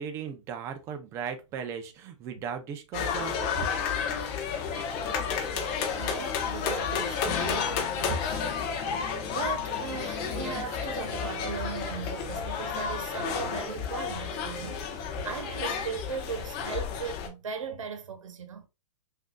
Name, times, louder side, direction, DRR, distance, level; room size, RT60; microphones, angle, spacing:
voice 1, 0.0-3.3 3.6-3.7 8.1-8.2, right 6 dB, 15° right, 0.5 m, -36 dB
sound 1, 2.9-17.3, left 6 dB, 25° left, 0.8 m, -31 dB
voice 2, 5.9-8.4 8.7-18.7, right 6 dB, 80° right, 1.0 m, -38 dB
6.0 x 2.6 x 2.2 m
hypercardioid pair, 155°, 16 cm